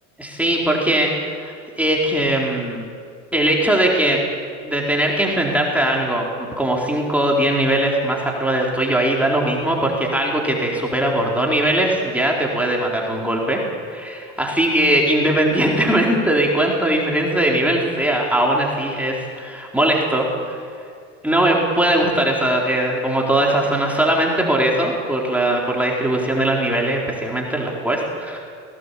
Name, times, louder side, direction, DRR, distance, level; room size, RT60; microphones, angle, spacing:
voice 1, 0.2-1.1 1.4-2.9 3.3-4.2 4.6-13.6 13.9-20.7 21.2-28.4, right 1 dB, 5° right, -2 dB, 4.3 m, -20 dB
19.0 x 18.5 x 8.5 m, 2.2 s
hypercardioid pair, 85°, 37 cm